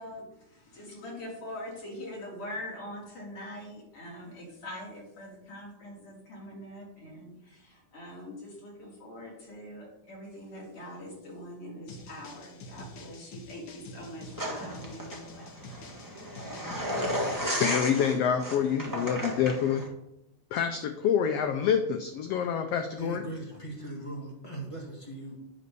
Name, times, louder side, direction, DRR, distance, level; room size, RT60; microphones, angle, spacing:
voice 1, 0.0-15.5, left 1 dB, 45° left, -4 dB, 3.6 m, -43 dB
sound 1, 11.9-17.6, left 1 dB, 65° left, 1.2 m, -46 dB
sound 2, 14.3-19.9, equal, 25° right, 0.4 m, -34 dB
voice 2, 17.6-19.8 20.5-23.2, left 8 dB, 80° left, 6 dB, 1.4 m, -27 dB
voice 3, 23.0-25.4, right 1 dB, 25° left, -2 dB, 0.7 m, -39 dB
9.2 x 4.3 x 6.8 m, 0.83 s
omnidirectional pair, 3.5 m